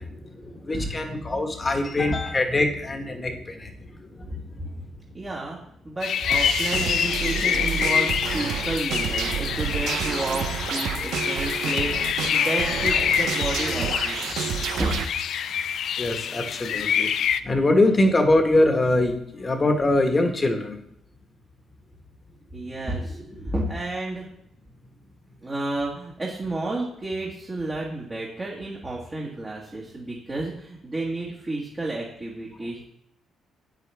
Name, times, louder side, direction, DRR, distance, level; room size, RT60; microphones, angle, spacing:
voice 1, 0.0-4.5 7.3-7.7 16.0-17.1 17.4-20.8 23.4-23.5, left 2 dB, 30° left, 4 dB, 1.4 m, -23 dB
voice 2, 5.1-5.6 5.8-14.2 14.8-14.9 22.5-23.2 23.4-24.3 25.4-32.8, right 2 dB, 25° right, -4 dB, 1.6 m, -31 dB
sound 1, 6.0-17.4, left 8 dB, 70° left, 0.4 m, -26 dB
sound 2, 6.3-15.1, right 8 dB, 80° right, 0.6 m, -29 dB
9.1 x 7.9 x 3.5 m, 0.74 s
cardioid pair, 90°, 0 cm